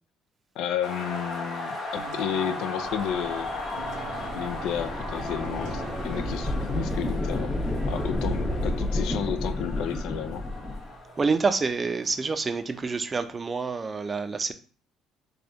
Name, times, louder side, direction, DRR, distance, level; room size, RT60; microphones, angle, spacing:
voice 1, 0.6-3.5 4.4-7.6 7.9-10.5, left 9 dB, 80° left, 0.3 m, -32 dB
sound 1, 0.8-12.5, left 2 dB, 55° left, 0.9 m, -37 dB
sound 2, 2.0-13.4, right 7 dB, 80° right, 0.5 m, -47 dB
sound 3, 2.8-10.9, left 1 dB, 15° left, 0.6 m, -31 dB
voice 2, 11.2-14.5, right 4 dB, 30° right, 0.4 m, -27 dB
3.4 x 2.2 x 3.9 m
supercardioid pair, 85°, 0 cm